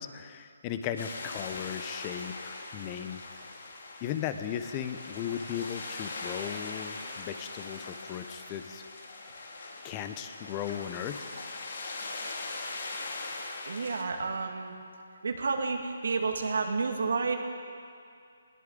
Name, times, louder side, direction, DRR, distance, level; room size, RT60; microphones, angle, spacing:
voice 1, 0.0-3.4 4.0-8.8 9.8-11.2, left 9 dB, 25° left, 9 dB, 0.9 m, -37 dB
sound 1, 1.0-14.0, left 3 dB, 65° left, 2.4 m, -41 dB
voice 2, 13.7-14.7 15.2-17.4, right 4 dB, 70° right, 4 dB, 1.9 m, -30 dB
21.0 x 17.5 x 3.9 m, 2.4 s
hypercardioid pair, 155°, 0 cm